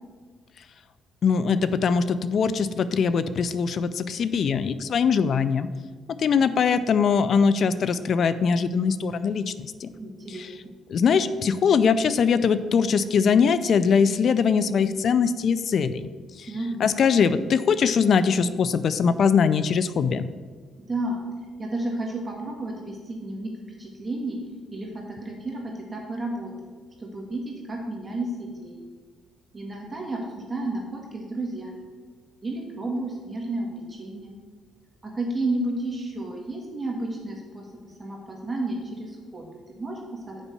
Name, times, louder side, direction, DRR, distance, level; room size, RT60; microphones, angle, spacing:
voice 1, 1.2-5.7 6.2-9.9 10.3-10.5 10.9-16.1 16.4-16.5 16.8-20.3, left 6 dB, 60° left, 14 dB, 0.4 m, -22 dB
voice 2, 6.7-7.0 10.0-10.5 16.5-16.8 20.9-21.2 21.6-23.5 23.8-24.4 24.7-26.5 27.0-28.8 29.5-31.8 32.4-34.3 35.0-37.7 38.0-40.4, right 2 dB, 25° right, -1 dB, 1.7 m, -32 dB
7.3 x 5.4 x 6.8 m, 1.5 s
cardioid pair, 90°, 0 cm